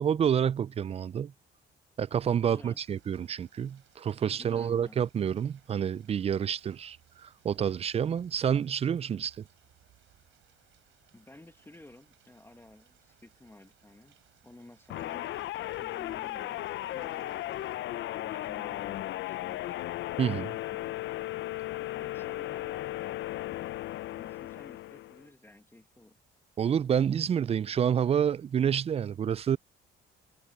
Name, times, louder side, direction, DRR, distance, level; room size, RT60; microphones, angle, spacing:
voice 1, 0.0-1.3 2.0-7.0 7.2-9.4 20.2-20.5 26.6-29.6, right 8 dB, 30° right, 0.4 m, -28 dB
voice 2, 2.4-2.8 4.4-5.0 11.1-14.2 14.4-15.5 15.8-19.8 20.4-20.9 21.9-23.2 24.2-26.2, left 2 dB, 10° left, 1.7 m, -53 dB
sound 1, 2.8-17.8, right 13 dB, 75° right, 5.1 m, -65 dB
sound 2, 14.9-25.3, left 15 dB, 65° left, 0.6 m, -36 dB
cardioid pair, 95°, 20 cm